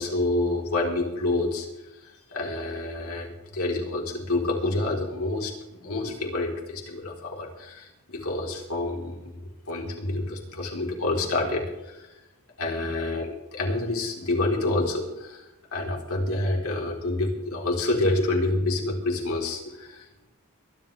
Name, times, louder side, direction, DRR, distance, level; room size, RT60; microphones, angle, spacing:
voice 1, 0.0-1.7 2.0-9.4 9.7-12.1 12.6-20.3, left 2 dB, 75° left, -1 dB, 4.1 m, -28 dB
23.0 x 11.5 x 3.5 m, 0.98 s
head